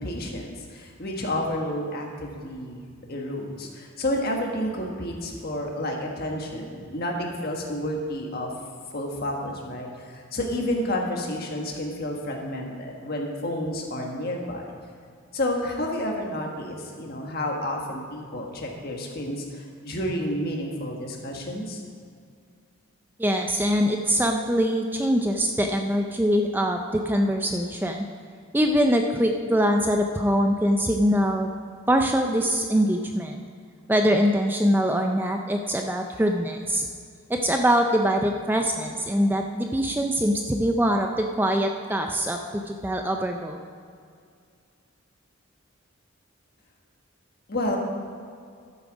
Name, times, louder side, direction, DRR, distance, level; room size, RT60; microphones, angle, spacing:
voice 1, 0.0-8.5 8.9-14.7 15.3-21.8 47.5-47.8, left 1 dB, 45° left, 0 dB, 1.5 m, -30 dB
voice 2, 23.2-28.0 28.5-31.5 31.9-33.4 33.9-36.9 37.3-43.6, equal, 10° right, 3 dB, 0.4 m, -23 dB
12.5 x 7.0 x 5.0 m, 2.3 s
head